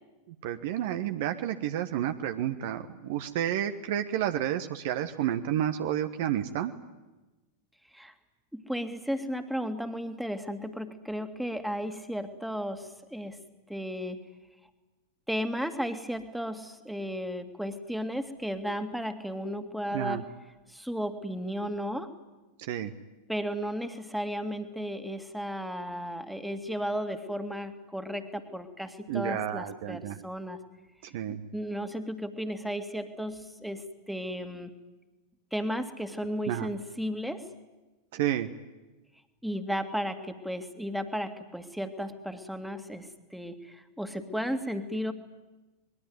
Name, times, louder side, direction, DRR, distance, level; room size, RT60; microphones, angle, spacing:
voice 1, 0.4-6.7 19.9-20.2 22.6-22.9 29.1-30.2 31.0-31.4 36.5-36.7 38.1-38.5, right 11 dB, 50° right, 8 dB, 1.2 m, -30 dB
voice 2, 8.5-13.4 13.7-14.2 15.3-20.2 20.7-22.1 23.3-30.6 31.3-34.7 35.5-37.4 39.4-45.1, equal, ahead, 8 dB, 2.2 m, -34 dB
24.5 x 21.5 x 9.4 m, 1.1 s
figure-of-eight pair, 90°, 0 cm